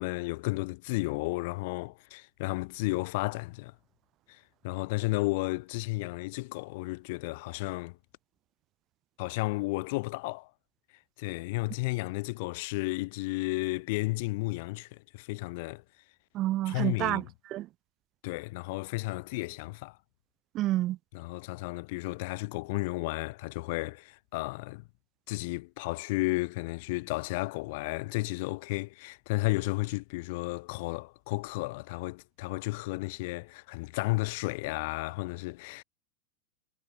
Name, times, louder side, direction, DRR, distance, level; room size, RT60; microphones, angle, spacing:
voice 1, 0.0-3.7 4.3-8.0 9.2-10.5 11.2-15.8 16.7-17.2 18.2-20.0 21.1-24.8 25.3-35.8, left 24 dB, 50° left, 5.9 m, -33 dB
voice 2, 16.3-17.7 20.5-21.0, right 15 dB, 35° right, 2.7 m, -29 dB
figure-of-eight pair, 90°, 0 cm